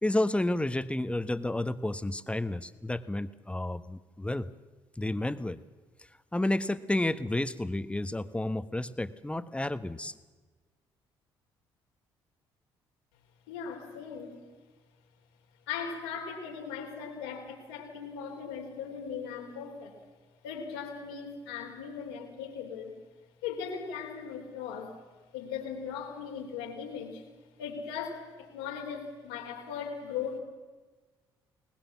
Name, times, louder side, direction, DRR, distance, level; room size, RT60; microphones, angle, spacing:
voice 1, 0.0-4.5 5.0-5.6 6.3-10.1, left 1 dB, 10° left, 12 dB, 1.2 m, -31 dB
voice 2, 13.5-14.4 15.7-20.0 20.4-22.9 23.4-25.0 25.3-27.2 27.6-30.4, left 7 dB, 85° left, 2 dB, 3.6 m, -38 dB
22.5 x 19.5 x 7.3 m, 1.3 s
hypercardioid pair, 55°, 11 cm